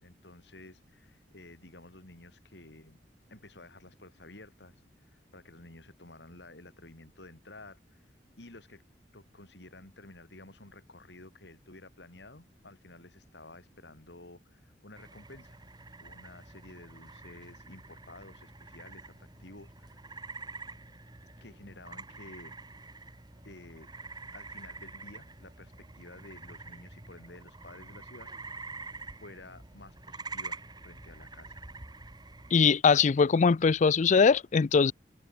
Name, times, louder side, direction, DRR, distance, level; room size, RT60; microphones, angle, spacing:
voice 1, 0.0-3.0 3.3-8.8 9.1-15.6 16.0-20.3 21.4-22.6 23.4-23.9 24.3-28.9 29.2-31.6, left 2 dB, 75° left, 3.2 m, -52 dB
sound 1, 15.0-32.6, right 3 dB, 25° right, 1.9 m, -46 dB
voice 2, 32.5-34.9, left 5 dB, 45° left, 0.4 m, -22 dB
open air
head